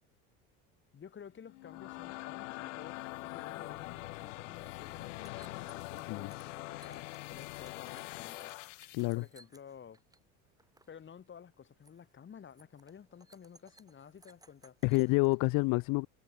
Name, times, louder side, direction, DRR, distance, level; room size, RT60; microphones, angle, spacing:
voice 1, 0.9-10.0 10.9-14.8, left 7 dB, 30° left, 5.9 m, -53 dB
sound 1, 1.4-9.2, left 22 dB, 85° left, 1.8 m, -43 dB
sound 2, 4.2-4.3 4.5-10.2 10.5-11.0 11.3-11.5 11.8-12.1 12.5-15.4, right 2 dB, 10° right, 6.5 m, -63 dB
voice 2, 8.9-9.2 14.8-16.1, left 26 dB, 60° left, 0.7 m, -28 dB
supercardioid pair, 110°, 37 cm